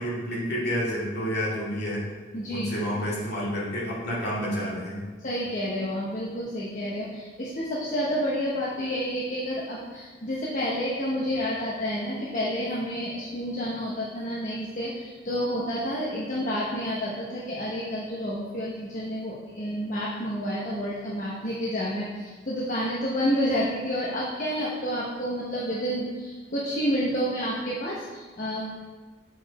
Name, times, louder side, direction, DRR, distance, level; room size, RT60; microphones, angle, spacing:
voice 1, 0.0-2.0 2.5-5.1, equal, 60° left, -6 dB, 2.2 m, -29 dB
voice 2, 2.3-2.9 5.2-28.6, equal, 45° left, -5 dB, 1.0 m, -29 dB
7.7 x 5.0 x 4.1 m, 1.4 s
head